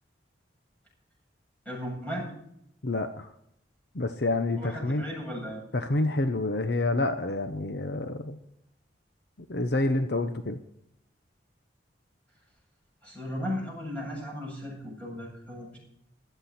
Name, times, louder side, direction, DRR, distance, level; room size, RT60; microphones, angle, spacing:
voice 1, 1.6-2.3 4.6-5.6 13.0-15.8, equal, 10° left, -4 dB, 7.7 m, -36 dB
voice 2, 2.8-3.3 3.9-5.0 5.7-8.4 9.5-10.6, left 2 dB, 60° left, 8 dB, 0.9 m, -28 dB
16.0 x 12.5 x 4.3 m, 0.75 s
head